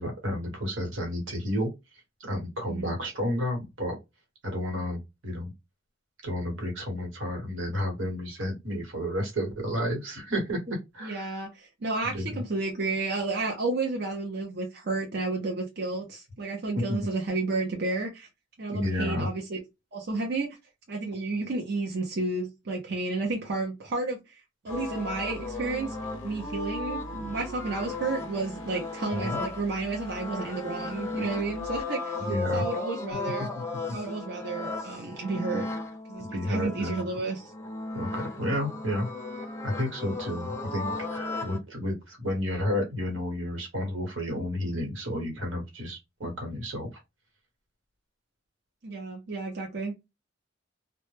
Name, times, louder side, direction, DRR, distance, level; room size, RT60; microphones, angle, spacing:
voice 1, 0.0-1.7 2.3-3.9 4.4-5.5 6.2-11.4 12.1-12.4 16.9-17.1 18.7-19.3 29.2-29.4 32.2-32.6 36.2-37.0 37.9-39.1 39.6-46.9, left 1 dB, 90° right, 1.1 m, -31 dB
voice 2, 11.0-18.3 18.6-19.6 19.9-20.5 20.9-24.4 24.6-25.9 26.2-32.3 32.5-33.5 33.9-35.7 36.1-37.5 48.8-49.9, right 3 dB, 60° right, 0.6 m, -31 dB
sound 1, 24.7-31.8, right 1 dB, 85° left, 0.6 m, -46 dB
sound 2, 24.7-41.6, left 3 dB, 15° left, 0.5 m, -36 dB
2.1 x 2.1 x 3.0 m
head